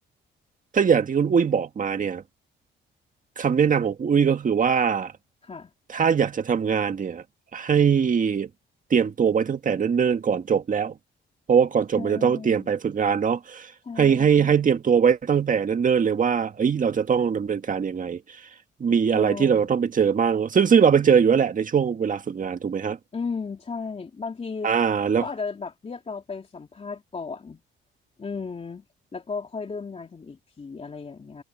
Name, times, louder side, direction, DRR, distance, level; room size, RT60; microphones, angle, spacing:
voice 1, 0.7-2.2 3.4-5.1 5.9-7.2 7.5-8.5 8.9-10.9 11.5-13.7 14.0-18.2 18.8-23.0 24.6-25.2, right 7 dB, 40° right, 1.8 m, -21 dB
voice 2, 11.9-12.7 13.8-14.6 19.1-19.7 23.1-24.7 25.2-27.6 28.2-28.8 29.1-31.4, left 5 dB, 30° left, 2.8 m, -35 dB
cardioid pair, 90°, 20 cm